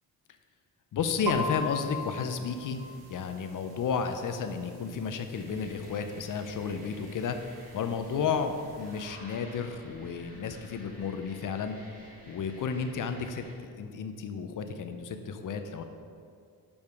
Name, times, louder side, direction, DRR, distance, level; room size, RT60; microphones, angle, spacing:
voice 1, 0.9-2.8 3.1-12.0 12.3-15.8, left 6 dB, 55° left, 7 dB, 0.6 m, -32 dB
sound 1, 1.3-9.1, left 1 dB, 75° right, 1.3 m, -41 dB
sound 2, 5.3-13.5, equal, 25° right, 1.9 m, -52 dB
6.9 x 5.3 x 4.6 m, 2.3 s
cardioid pair, 115°, 37 cm